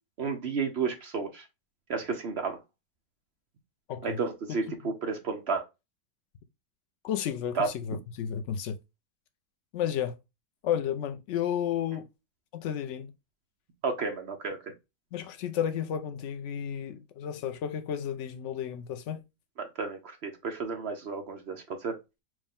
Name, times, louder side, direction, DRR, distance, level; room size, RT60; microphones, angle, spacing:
voice 1, 0.2-1.4 1.9-2.6 4.0-5.6 7.5-7.7 13.8-14.6 19.6-22.0, right 4 dB, 60° right, 0.7 m, -32 dB
voice 2, 7.0-8.8 9.7-10.2 10.6-12.1 12.5-13.1 15.1-19.2, left 9 dB, 80° left, 0.6 m, -32 dB
4.7 x 2.1 x 3.4 m
omnidirectional pair, 1.8 m